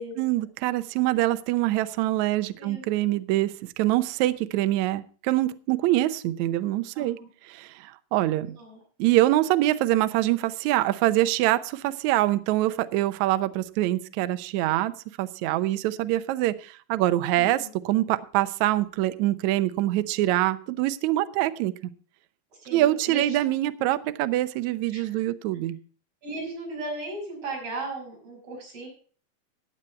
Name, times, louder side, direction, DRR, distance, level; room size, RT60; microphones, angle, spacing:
voice 1, 0.2-7.2 7.5-8.5 9.0-14.9 15.2-21.7 22.7-25.8, right 15 dB, 85° right, 12 dB, 1.6 m, -24 dB
voice 2, 6.9-7.3 8.4-8.8 17.4-17.7 22.6-23.4 24.9-25.2 26.2-28.9, right 2 dB, 40° right, 0 dB, 6.7 m, -37 dB
15.5 x 9.0 x 4.3 m, 0.42 s
omnidirectional pair, 4.3 m